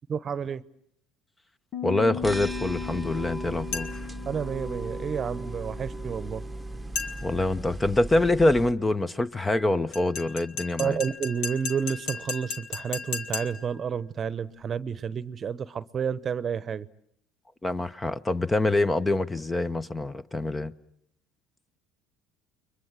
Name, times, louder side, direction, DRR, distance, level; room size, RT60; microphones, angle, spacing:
voice 1, 0.1-0.6 4.3-6.4 10.8-16.9, right 7 dB, 40° right, 1.0 m, -30 dB
Piano, 1.7-7.3, left 9 dB, 50° left, 1.1 m, -39 dB
voice 2, 1.8-4.0 7.2-11.0 17.6-20.7, left 2 dB, 15° left, 1.0 m, -25 dB
sound 1, 2.2-8.7, right 2 dB, 5° right, 1.3 m, -37 dB
sound 2, 3.7-4.2 7.0-7.5 9.9-13.8, left 5 dB, 70° left, 2.1 m, -35 dB
30.0 x 23.0 x 7.6 m
hypercardioid pair, 75°, 0 cm